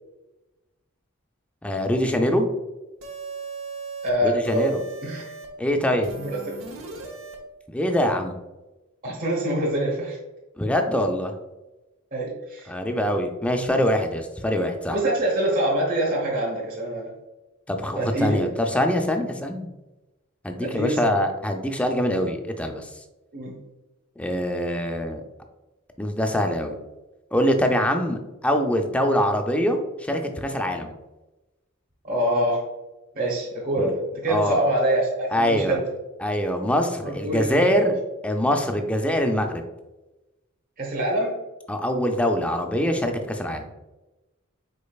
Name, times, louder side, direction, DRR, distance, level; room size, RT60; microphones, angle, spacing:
voice 1, 1.6-2.5 4.2-4.8 5.6-6.1 7.7-8.3 10.6-11.3 12.7-15.0 17.7-19.7 20.4-22.9 24.2-25.2 26.0-26.8 27.3-30.9 33.8-33.9 34.3-34.6 35.3-35.8 36.2-37.9 38.2-39.6 41.7-43.7, equal, 5° left, 4 dB, 0.4 m, -24 dB
sound 1, 3.0-4.1 4.4-5.5 6.0-7.4, right 4 dB, 70° right, 0.9 m, -38 dB
voice 2, 4.0-4.7 5.0-5.3 6.2-6.5 9.0-10.2 12.1-12.7 14.9-17.1 18.0-18.5 20.6-21.2 23.3-23.6 32.0-32.6 33.1-35.9 37.0-37.9 40.8-41.3, right 1 dB, 45° right, -4 dB, 1.1 m, -25 dB
5.2 x 4.2 x 2.3 m, 1.1 s
head